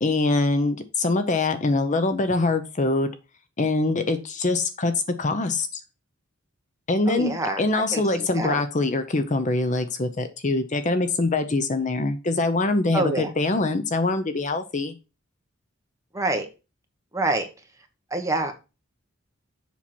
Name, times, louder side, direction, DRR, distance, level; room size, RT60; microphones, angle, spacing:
voice 1, 0.0-3.1 3.6-4.9 5.2-5.8 6.9-14.9, left 2 dB, 35° left, 9 dB, 0.7 m, -24 dB
voice 2, 7.1-8.6 12.9-13.3 16.1-16.5 17.1-17.5 18.1-18.5, right 2 dB, 15° right, 4 dB, 1.3 m, -26 dB
7.3 x 5.7 x 4.4 m, 0.29 s
head